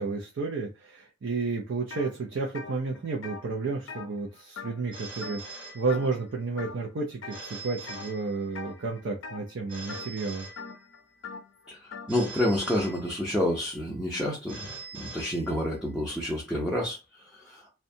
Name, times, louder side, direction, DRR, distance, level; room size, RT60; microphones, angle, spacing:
voice 1, 0.0-10.5, right 4 dB, 65° right, 0.5 m, -32 dB
sound 1, 1.9-2.1 2.4-4.9 5.2-5.6 5.9-6.3 6.6-7.4 7.9-8.2 8.5-12.1, left 5 dB, 80° left, 0.5 m, -42 dB
Telephone, 4.9-6.4 7.3-8.8 9.7-11.2 12.1-13.6 14.5-16.0, right 3 dB, 25° right, 1.2 m, -44 dB
voice 2, 11.7-17.7, left 1 dB, 5° right, 0.5 m, -29 dB
2.7 x 2.2 x 2.6 m
head